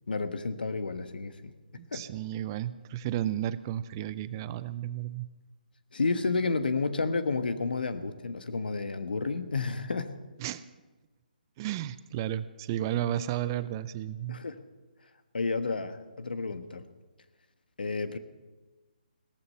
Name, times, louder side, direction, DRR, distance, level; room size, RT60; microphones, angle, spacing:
voice 1, 0.1-1.5 1.9-2.0 5.9-10.2 14.3-14.7 15.3-16.8 17.8-18.2, left 4 dB, 75° left, 10 dB, 1.3 m, -31 dB
voice 2, 1.8-5.3 10.4-10.6 11.6-14.4, right 12 dB, 25° right, 15 dB, 0.5 m, -33 dB
17.0 x 14.0 x 5.6 m, 1.2 s
hypercardioid pair, 155°, 5 cm